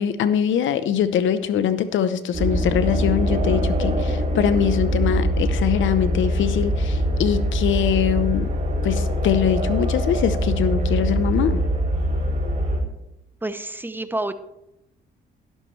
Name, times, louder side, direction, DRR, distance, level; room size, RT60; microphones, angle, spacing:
voice 1, 0.0-8.5 8.8-11.6, left 9 dB, 75° left, 12 dB, 0.9 m, -22 dB
sound 1, 2.3-12.8, equal, 35° right, 2.9 m, -23 dB
voice 2, 13.4-14.3, right 2 dB, 10° right, 11 dB, 0.8 m, -28 dB
12.0 x 10.5 x 3.3 m, 0.85 s
cardioid pair, 90°, 20 cm